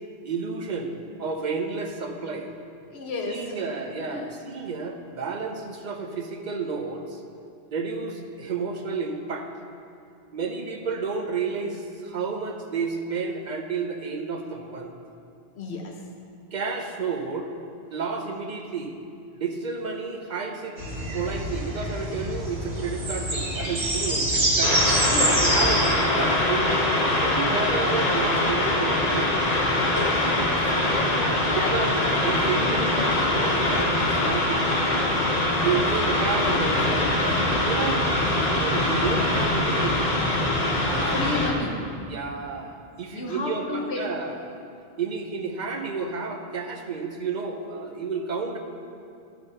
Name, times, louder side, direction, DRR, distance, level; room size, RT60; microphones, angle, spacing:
voice 1, 0.2-2.5 3.3-7.2 7.7-9.5 10.3-14.9 16.5-17.5 17.9-18.9 19.3-20.8 21.1-25.1 25.4-26.8 27.2-29.4 31.5-32.9 33.3-34.6 35.6-38.1 38.5-40.2 40.8-41.3 42.1-44.6 45.0-48.6, right 5 dB, 50° right, 3 dB, 0.8 m, -31 dB
voice 2, 2.9-3.6 4.1-4.3 15.6-15.9 25.0-25.4 29.7-32.1 32.5-33.4 35.6-35.8 41.1-41.8 43.1-44.0, left 3 dB, 80° left, 1 dB, 1.2 m, -33 dB
sound 1, 20.8-25.9, right 1 dB, 75° right, 1.9 m, -25 dB
sound 2, 24.6-41.5, left 1 dB, 40° left, 1.0 m, -23 dB
12.0 x 4.0 x 5.4 m, 2.6 s
omnidirectional pair, 1.1 m